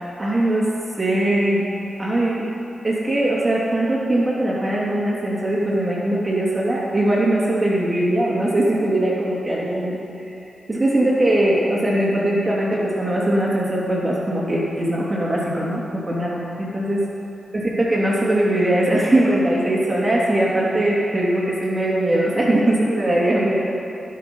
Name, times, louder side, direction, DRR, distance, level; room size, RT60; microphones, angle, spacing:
voice 1, 0.2-1.7 2.0-2.5 2.8-10.0 10.2-10.3 10.7-17.0 17.5-23.6, right 1 dB, 30° right, -5 dB, 2.8 m, -20 dB
17.0 x 6.2 x 5.4 m, 2.8 s
cardioid pair, 45°, 0 cm